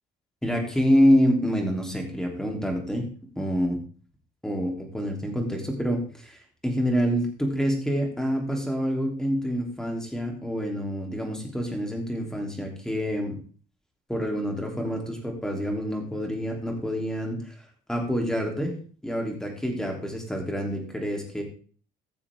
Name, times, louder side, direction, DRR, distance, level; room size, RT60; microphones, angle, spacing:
voice 1, 0.4-3.1 3.3-3.8 4.4-13.4 14.1-17.5 17.9-18.8 19.0-21.4, equal, 5° left, 1 dB, 3.3 m, -27 dB
16.0 x 6.9 x 3.7 m, 0.41 s
cardioid pair, 110°, 17 cm